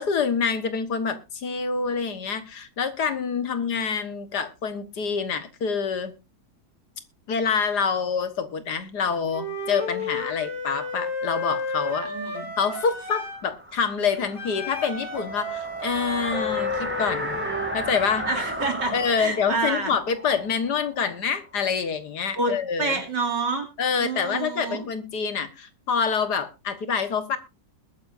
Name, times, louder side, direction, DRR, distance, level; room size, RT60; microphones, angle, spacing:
voice 1, 0.0-6.1 7.3-12.1 12.6-17.4 17.7-18.3 18.9-23.0 23.8-27.4, left 6 dB, 70° left, 11 dB, 1.9 m, -26 dB
Wind instrument woodwind instrument, 9.3-13.4 14.3-17.7, left 2 dB, 50° left, 7.2 m, -32 dB
voice 2, 12.0-12.5 18.3-19.9 22.3-23.7 24.0-24.9, right 3 dB, 85° right, 4 dB, 3.7 m, -28 dB
sound 1, 12.8-21.6, right 1 dB, 5° right, 2.4 m, -35 dB
21.0 x 9.6 x 2.6 m, 0.27 s
omnidirectional pair, 1.9 m